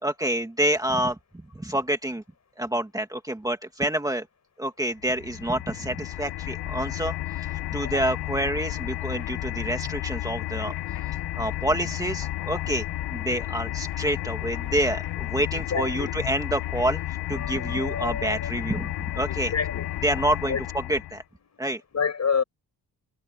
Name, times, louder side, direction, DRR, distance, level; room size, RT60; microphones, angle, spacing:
voice 1, 0.0-1.2 1.5-2.2 2.6-4.3 4.6-10.7 11.4-12.9 13.1-19.5 20.0-20.6 20.9-21.2 21.6-21.8, right 1 dB, 10° right, 2.1 m, -28 dB
sound 1, 5.0-21.2, left 15 dB, 90° left, 0.8 m, -32 dB
voice 2, 15.5-16.2 17.3-20.0 20.4-20.6 21.4-22.4, left 6 dB, 45° left, 5.3 m, -30 dB
wide cardioid pair, 155°, 38 cm